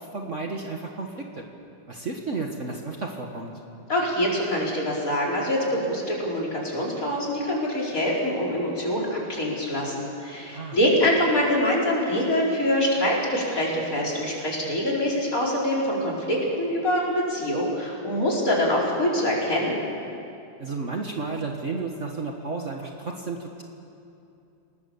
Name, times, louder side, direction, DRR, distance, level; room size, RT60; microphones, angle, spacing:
voice 1, 0.0-1.4 1.9-3.5 10.5-10.8 20.6-23.6, right 3 dB, 40° right, 1 dB, 1.7 m, -32 dB
voice 2, 3.9-19.8, left 1 dB, 45° left, -4 dB, 5.1 m, -24 dB
27.5 x 19.0 x 7.1 m, 2.7 s
omnidirectional pair, 2.1 m